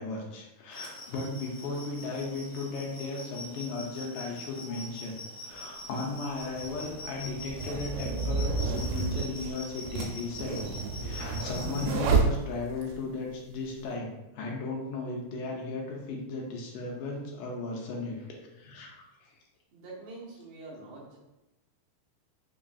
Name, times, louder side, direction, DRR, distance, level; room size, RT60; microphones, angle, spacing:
voice 1, 0.0-10.7 11.0-18.3 18.5-19.4, left 3 dB, 85° left, -1 dB, 2.1 m, -36 dB
sound 1, 0.7-12.0, left 2 dB, 60° left, 0.9 m, -44 dB
sound 2, 5.5-5.6 6.5-13.0, right 4 dB, 90° right, 2.2 m, -30 dB
voice 2, 19.7-21.2, right 2 dB, 70° right, -6 dB, 1.9 m, -45 dB
5.2 x 2.5 x 2.3 m, 0.97 s
omnidirectional pair, 3.7 m